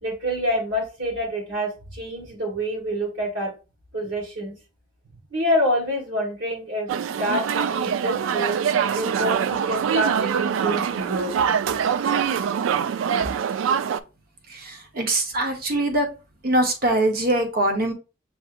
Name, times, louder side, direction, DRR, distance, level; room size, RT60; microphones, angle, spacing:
voice 1, 0.0-3.5 3.9-4.5 5.3-6.9 7.1-8.5 8.9-11.4 11.7-12.2, equal, 70° right, -3 dB, 1.5 m, -27 dB
sound 1, 6.9-14.0, right 7 dB, 85° right, 0.3 m, -24 dB
voice 2, 14.5-16.1 16.4-17.9, right 1 dB, 50° right, 5 dB, 0.9 m, -23 dB
6.3 x 2.7 x 2.5 m, 0.31 s
head